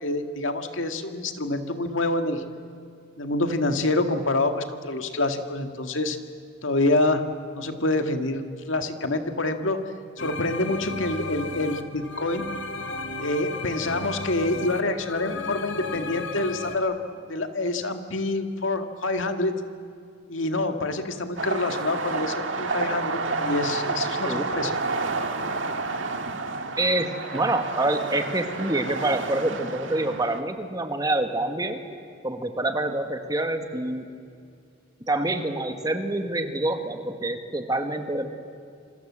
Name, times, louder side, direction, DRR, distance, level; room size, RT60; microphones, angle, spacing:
voice 1, 0.0-2.4 3.2-6.2 6.6-7.2 7.5-9.8 10.2-12.5 13.2-17.0 17.3-19.5 20.3-24.7, left 2 dB, 80° left, 6 dB, 1.9 m, -26 dB
sound 1, 10.2-16.7, left 3 dB, 65° left, 1.9 m, -34 dB
sound 2, 21.4-30.4, right 3 dB, 75° right, 1.9 m, -30 dB
voice 2, 26.8-31.8 32.2-34.0 35.1-38.3, right 2 dB, 20° right, 6 dB, 1.7 m, -26 dB
27.5 x 26.0 x 7.5 m, 2.4 s
head